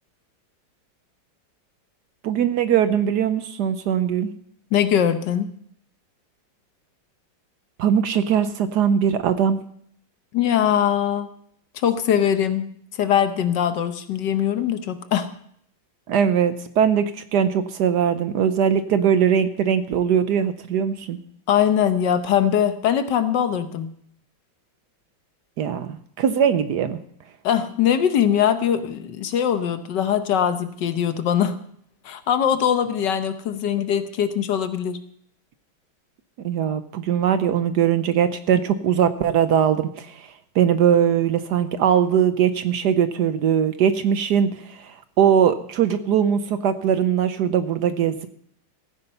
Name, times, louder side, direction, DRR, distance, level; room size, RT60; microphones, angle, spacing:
voice 1, 2.2-4.3 7.8-9.6 16.1-21.2 25.6-27.0 36.4-40.3 40.5-48.3, right 8 dB, 65° right, 11 dB, 1.2 m, -21 dB
voice 2, 4.7-5.5 10.3-11.3 11.7-15.3 21.5-23.9 27.4-31.6 32.0-35.0, left 9 dB, 65° left, 10 dB, 1.5 m, -21 dB
15.5 x 9.7 x 5.5 m, 0.66 s
omnidirectional pair, 2.1 m